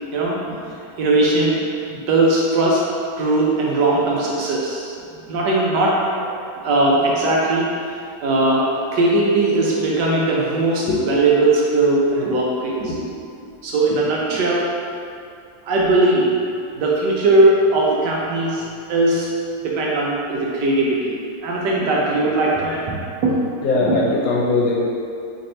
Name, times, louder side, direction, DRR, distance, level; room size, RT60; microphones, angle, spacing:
voice 1, 0.6-2.8 3.2-4.9 5.3-7.7 8.2-13.0 13.3-14.7 15.6-16.3 16.7-18.6 18.9-19.3 19.6-21.2 21.4-23.4 23.9-24.0, right 2 dB, 70° right, -4 dB, 1.1 m, -19 dB
voice 2, 23.6-24.8, left 3 dB, 80° left, -4 dB, 1.4 m, -20 dB
3.3 x 2.6 x 4.1 m, 2.4 s
omnidirectional pair, 2.1 m